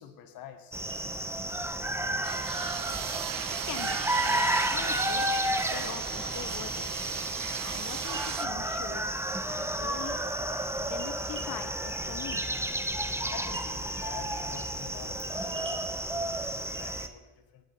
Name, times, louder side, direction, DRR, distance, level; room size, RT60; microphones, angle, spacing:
voice 1, 0.0-1.5 12.0-12.2 13.3-17.6, left 8 dB, 80° left, 8 dB, 1.5 m, -47 dB
sound 1, 0.7-17.1, right 1 dB, 5° right, 1.1 m, -32 dB
sound 2, 2.2-8.5, right 13 dB, 70° right, 0.7 m, -37 dB
voice 2, 3.7-6.9 7.6-10.2 10.8-12.4, left 10 dB, 60° left, 13 dB, 1.0 m, -42 dB
sound 3, 9.3-17.1, right 4 dB, 35° right, 1.6 m, -50 dB
18.5 x 8.7 x 4.2 m, 1.2 s
supercardioid pair, 55°, 35 cm